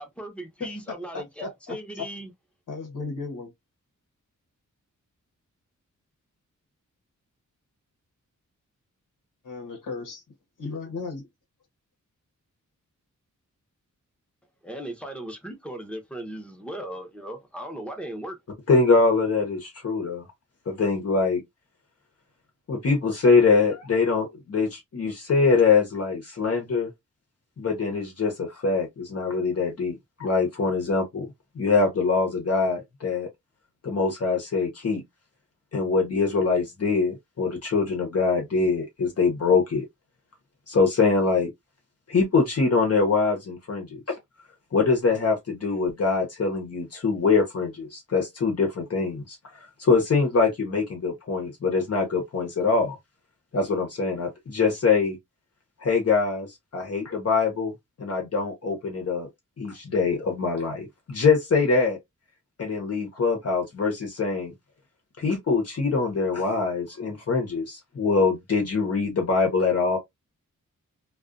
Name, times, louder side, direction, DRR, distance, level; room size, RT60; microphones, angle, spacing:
voice 1, 0.0-2.3 14.6-18.4, right 1 dB, 5° left, 0.8 m, -37 dB
voice 2, 0.6-2.1 2.7-3.5 9.4-10.2 10.6-11.2, left 4 dB, 85° left, 0.9 m, -35 dB
voice 3, 18.7-20.3 20.7-21.4 22.7-26.9 27.6-31.3 31.5-33.3 33.8-35.0 35.7-39.9 40.7-41.5 42.1-44.2 44.7-49.4 49.8-53.0 53.5-55.2 55.8-57.7 58.0-59.3 59.6-62.0 62.6-64.5 65.2-70.0, left 4 dB, 50° left, 0.9 m, -23 dB
2.4 x 2.3 x 2.4 m
wide cardioid pair, 105°, 31 cm